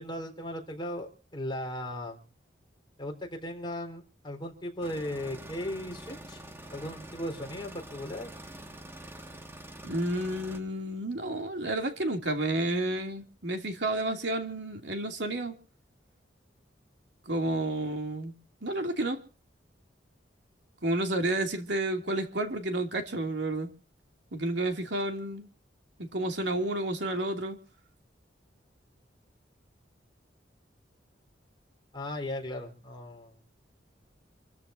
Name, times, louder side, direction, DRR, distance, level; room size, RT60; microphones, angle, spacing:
voice 1, 0.0-2.2 3.0-6.4 6.7-8.3 31.9-33.4, left 1 dB, 25° left, 4.0 m, -37 dB
sound 1, 4.8-10.6, right 1 dB, 15° right, 1.8 m, -46 dB
voice 2, 9.8-15.5 17.3-18.3 18.6-19.2 20.8-23.7 24.3-25.5 26.0-27.6, right 1 dB, 70° right, 2.8 m, -31 dB
28.0 x 14.0 x 2.7 m
head